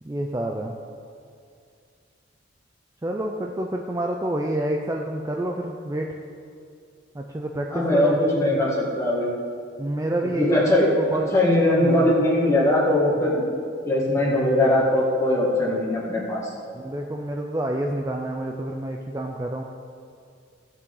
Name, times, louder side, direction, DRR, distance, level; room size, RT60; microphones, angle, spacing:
voice 1, 0.1-0.8 3.0-6.1 7.1-8.2 9.8-11.3 11.8-12.1 16.7-19.6, right 1 dB, 15° right, 1 dB, 0.4 m, -28 dB
voice 2, 7.7-9.3 10.4-10.9 11.3-13.4 13.9-16.4, left 1 dB, 15° left, -5 dB, 1.9 m, -20 dB
16.0 x 6.0 x 3.9 m, 2.3 s
head